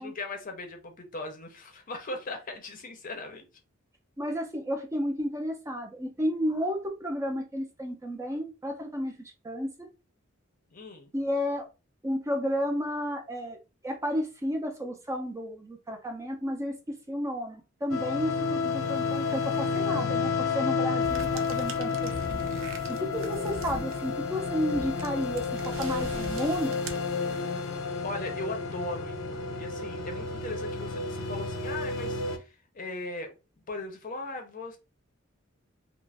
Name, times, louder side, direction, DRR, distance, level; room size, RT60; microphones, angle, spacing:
voice 1, 0.0-3.5 10.7-11.1 28.0-33.3 33.7-34.8, left 2 dB, 40° left, 0.6 m, -38 dB
voice 2, 4.2-9.9 11.1-11.7 12.0-13.6 13.8-16.7 17.1-22.5 22.9-26.8, equal, 15° right, 0.4 m, -32 dB
sound 1, 17.9-32.4, left 4 dB, 85° left, 0.5 m, -31 dB
sound 2, 21.0-27.7, right 2 dB, 70° right, 0.5 m, -43 dB
2.4 x 2.0 x 3.2 m
head